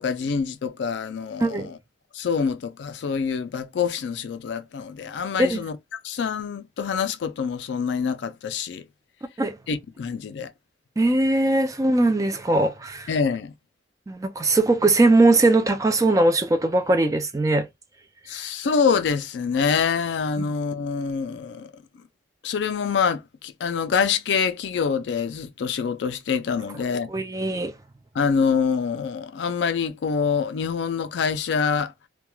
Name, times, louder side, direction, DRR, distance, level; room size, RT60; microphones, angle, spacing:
voice 1, 0.0-1.8 2.1-5.8 6.0-8.8 9.7-10.5 13.1-13.5 18.3-21.7 22.4-27.1 28.1-31.9, left 6 dB, 75° left, 0.4 m, -25 dB
voice 2, 1.4-1.7 5.4-5.6 9.4-9.6 11.0-13.1 14.1-17.7 20.4-20.5 27.1-27.7, right 2 dB, 20° right, 0.3 m, -20 dB
3.0 x 2.2 x 2.2 m
head